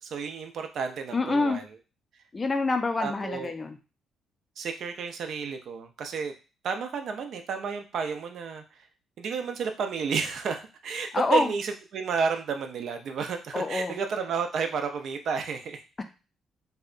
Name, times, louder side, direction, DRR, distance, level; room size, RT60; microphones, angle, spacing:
voice 1, 0.0-1.6 3.0-3.5 4.6-6.3 6.6-8.9 9.2-16.0, right 5 dB, 65° right, 6 dB, 0.4 m, -31 dB
voice 2, 1.1-1.6 2.3-3.8 11.1-11.5 13.5-14.0, left 3 dB, 25° left, 7 dB, 0.4 m, -26 dB
2.7 x 2.1 x 2.4 m, 0.32 s
cardioid pair, 90°, 0 cm